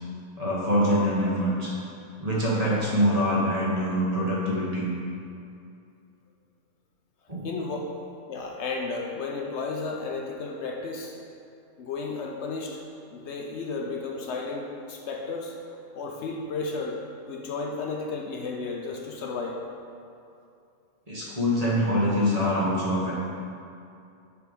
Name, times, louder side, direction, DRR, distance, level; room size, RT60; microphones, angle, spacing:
voice 1, 0.4-1.8 2.2-4.9 7.3-7.5 21.1-23.1, equal, 30° right, -7 dB, 1.2 m, -24 dB
voice 2, 7.4-7.9 8.3-11.1 11.8-12.8 13.1-15.5 15.9-17.0 17.3-19.6, left 3 dB, 65° left, 1 dB, 0.8 m, -33 dB
6.8 x 3.4 x 5.2 m, 2.6 s
omnidirectional pair, 1.3 m